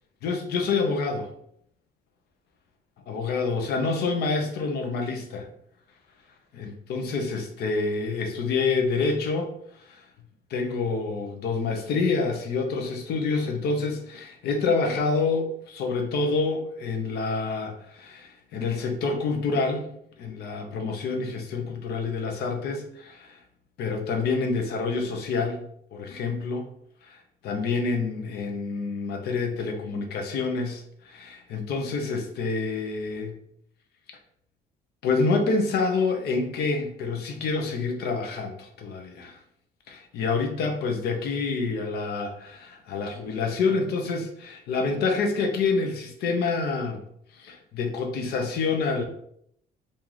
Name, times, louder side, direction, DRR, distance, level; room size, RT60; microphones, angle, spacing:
voice 1, 0.2-1.3 3.1-5.5 6.5-9.5 9.9-10.0 10.5-19.9 20.2-23.4 23.8-25.6 25.9-26.7 27.0-27.2 27.4-33.3 35.0-39.4 39.9-47.0 47.3-49.0, left 4 dB, 70° left, 4 dB, 0.7 m, -27 dB
2.9 x 2.6 x 3.8 m, 0.71 s
cardioid pair, 110°, 17 cm